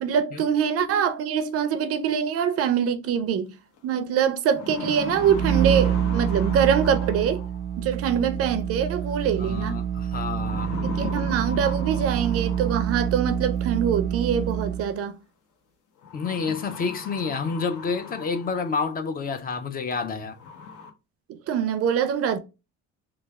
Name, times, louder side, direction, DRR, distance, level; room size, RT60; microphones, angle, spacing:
voice 1, 0.0-3.5 3.8-7.4 7.8-9.8 10.8-15.2 21.5-22.4, right 8 dB, 50° right, 0.4 m, -24 dB
sound 1, 3.8-3.9 4.3-7.7 9.1-9.6 10.3-13.1 14.4-14.5 16.0-18.9 19.4-19.5 20.0-20.1 20.4-20.9, left 5 dB, 80° left, 0.9 m, -38 dB
sound 2, 5.1-14.9, right 9 dB, 90° right, 0.8 m, -27 dB
voice 2, 9.4-10.8 16.1-20.4, left 5 dB, 30° left, 0.4 m, -29 dB
3.2 x 2.3 x 3.4 m
cardioid pair, 165°, 30 cm